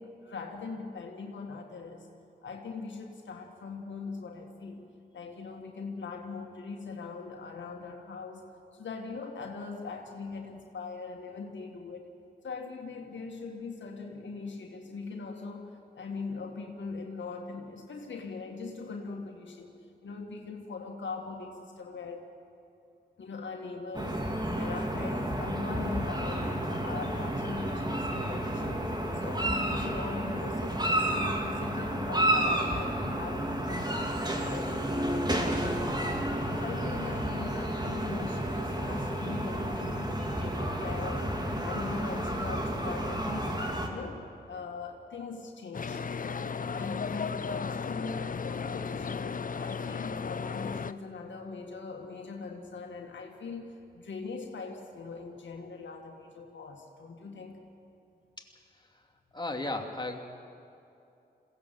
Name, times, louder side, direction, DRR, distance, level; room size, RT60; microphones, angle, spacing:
voice 1, 0.0-2.1 2.4-4.9 5.1-8.4 8.7-12.1 12.4-19.8 20.0-22.2 23.2-24.2 24.5-28.8 29.1-41.3 41.6-43.6 43.9-57.6, left 4 dB, 80° left, 2 dB, 1.9 m, -41 dB
sound 1, 23.9-43.9, right 1 dB, 20° right, 2.9 m, -31 dB
sound 2, 45.7-50.9, left 5 dB, 45° left, 0.6 m, -35 dB
voice 2, 59.3-60.3, left 2 dB, 25° left, 2 dB, 2.6 m, -35 dB
22.0 x 17.0 x 7.7 m, 2.7 s
cardioid pair, 50°, 19 cm